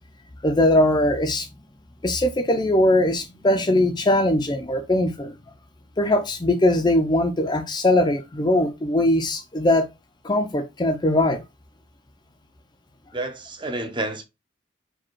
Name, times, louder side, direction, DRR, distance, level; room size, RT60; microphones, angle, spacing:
voice 1, 0.4-1.5 2.0-5.4 6.0-9.9 10.2-11.4, left 1 dB, 20° left, 0.4 m, -20 dB
voice 2, 13.1-14.2, right 2 dB, 25° right, 0.6 m, -29 dB
4.9 x 2.3 x 4.5 m
head